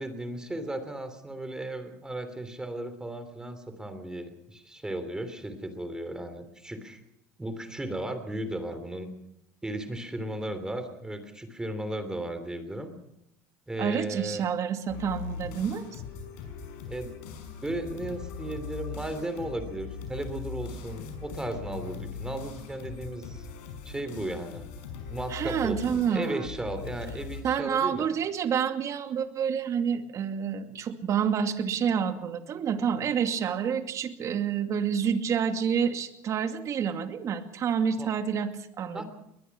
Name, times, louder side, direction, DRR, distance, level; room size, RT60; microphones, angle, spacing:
voice 1, 0.0-7.0 7.4-9.1 9.6-12.9 13.7-14.5 16.9-17.2 17.6-23.5 23.8-24.7 25.1-28.1 38.0-38.1 38.9-39.0, right 1 dB, 10° right, 9 dB, 3.1 m, -35 dB
voice 2, 13.8-16.0 25.3-26.5 27.4-39.0, right 7 dB, 45° right, 7 dB, 2.3 m, -28 dB
sound 1, 14.9-27.4, left 5 dB, 80° left, 5.7 m, -40 dB
21.5 x 21.0 x 6.1 m, 0.79 s
supercardioid pair, 110°, 8 cm